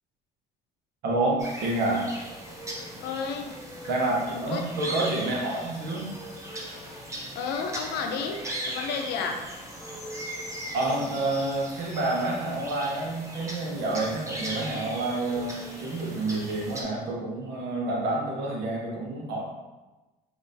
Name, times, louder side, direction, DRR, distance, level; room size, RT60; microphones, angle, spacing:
voice 1, 1.0-2.0 3.9-6.1 10.7-19.4, right 2 dB, 80° right, -2 dB, 1.0 m, -28 dB
sound 1, 1.4-16.8, right 1 dB, 20° right, 0.8 m, -39 dB
voice 2, 3.0-3.5 4.3-4.6 7.3-8.4 8.7-9.4, left 5 dB, 80° left, 3 dB, 0.6 m, -31 dB
5.1 x 2.7 x 2.7 m, 1.1 s
cardioid pair, 110°, 17 cm